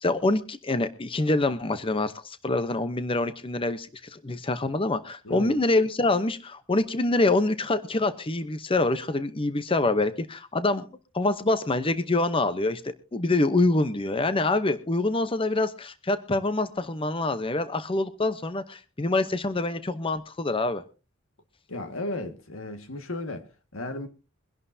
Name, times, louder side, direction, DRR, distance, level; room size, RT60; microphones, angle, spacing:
voice 1, 0.0-10.9 11.1-20.8, left 2 dB, 25° left, 0.8 m, -26 dB
voice 2, 5.2-5.6 21.7-23.5 23.7-24.1, left 2 dB, 90° left, 1.8 m, -34 dB
23.5 x 11.0 x 2.7 m
head